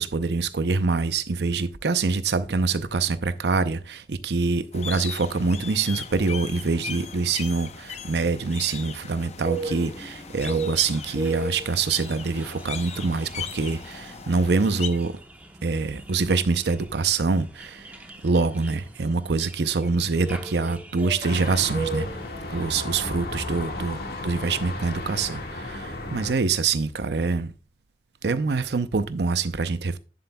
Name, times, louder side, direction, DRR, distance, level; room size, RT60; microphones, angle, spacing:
voice 1, 0.0-15.2 15.6-22.1 22.5-24.0 24.2-27.5 28.2-30.0, right 4 dB, 70° right, 0.6 m, -25 dB
sound 1, 4.7-14.9, left 6 dB, 40° left, 0.6 m, -38 dB
sound 2, 9.5-22.3, right 3 dB, 10° right, 0.9 m, -37 dB
sound 3, 21.2-26.3, left 2 dB, 60° left, 1.8 m, -34 dB
11.0 x 7.7 x 2.3 m
head